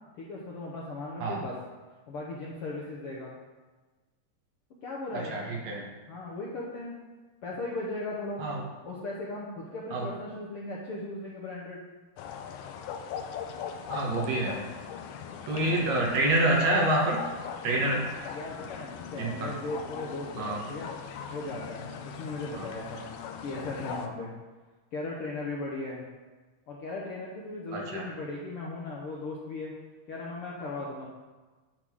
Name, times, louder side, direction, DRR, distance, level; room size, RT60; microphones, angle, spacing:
voice 1, 0.2-1.6 2.1-3.4 4.8-5.6 6.1-7.0 7.4-8.4 8.8-11.8 15.6-15.9 18.3-20.9 21.3-23.0 23.4-24.3 24.9-26.0 26.7-29.7 30.1-31.1, left 2 dB, 65° left, -4 dB, 1.4 m, -37 dB
voice 2, 5.1-5.8 8.4-8.6 9.9-10.1 13.9-14.6 15.5-17.2 17.6-18.0 19.2-19.5 20.4-20.6 22.6-22.7 27.7-28.1, right 2 dB, 65° right, -2 dB, 2.2 m, -27 dB
sound 1, 12.2-24.1, left 7 dB, 80° left, 2.0 m, -39 dB
10.0 x 3.8 x 6.0 m, 1.3 s
omnidirectional pair, 3.7 m